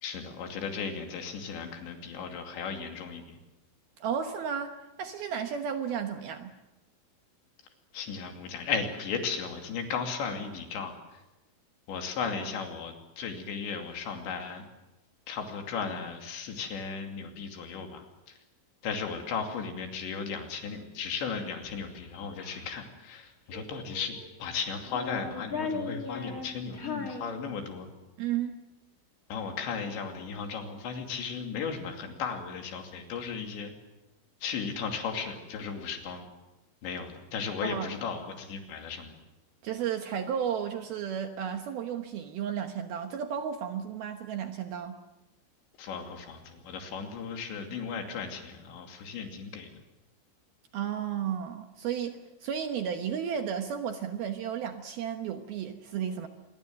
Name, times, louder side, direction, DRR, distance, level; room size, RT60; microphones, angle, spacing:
voice 1, 0.0-3.4 7.9-11.2 11.9-14.7 15.3-18.4 18.8-27.9 29.3-33.7 34.4-36.3 36.8-39.1 45.8-49.7, left 6 dB, 70° left, 4 dB, 4.8 m, -36 dB
voice 2, 4.0-6.5 28.2-28.6 37.6-37.9 39.6-45.0 50.7-56.3, right 8 dB, 70° right, 6 dB, 2.6 m, -33 dB
Child speech kid speaking, 21.1-22.7 23.5-24.4 24.8-28.0, left 4 dB, 30° left, 1.6 m, -39 dB
26.5 x 22.0 x 7.7 m, 0.98 s
omnidirectional pair, 5.5 m